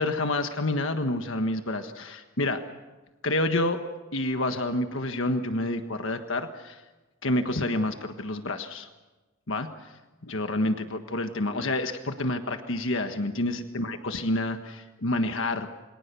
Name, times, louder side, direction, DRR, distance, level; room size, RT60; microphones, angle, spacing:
voice 1, 0.0-2.6 3.2-3.8 4.1-6.8 7.2-8.9 9.5-9.9 10.2-15.7, left 2 dB, 65° left, 6 dB, 1.5 m, -28 dB
29.0 x 24.0 x 7.0 m, 1.2 s
head